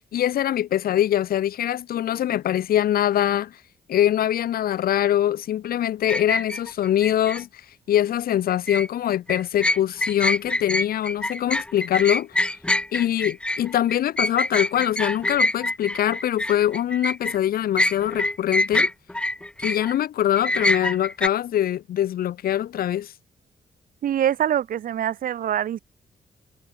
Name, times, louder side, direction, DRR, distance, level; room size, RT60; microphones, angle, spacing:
voice 1, 0.1-3.5 3.9-7.5 7.9-12.3 12.9-18.9 19.6-23.1, left 11 dB, 75° left, 2.8 m, -23 dB
sound 1, 6.1-7.4 8.5-8.9 9.3-17.4 17.8-19.9 20.4-21.3, left 1 dB, 5° left, 0.7 m, -25 dB
voice 2, 24.0-25.8, right 10 dB, 65° right, 2.2 m, -24 dB
cardioid pair, 140°, 15 cm